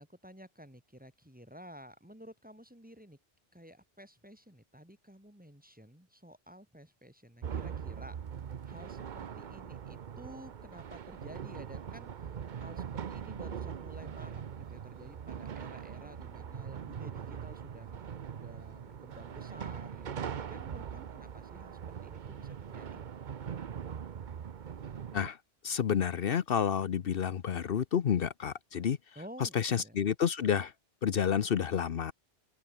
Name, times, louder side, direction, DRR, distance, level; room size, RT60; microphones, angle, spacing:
voice 1, 0.0-3.2 3.5-8.2 8.7-18.1 18.3-23.0 29.2-30.0, equal, 10° right, 2.3 m, -52 dB
sound 1, 7.4-25.3, right 8 dB, 55° right, 0.8 m, -41 dB
voice 2, 25.6-29.0 29.4-30.7 31.0-32.1, left 8 dB, 65° left, 1.0 m, -30 dB
open air
omnidirectional pair, 1.0 m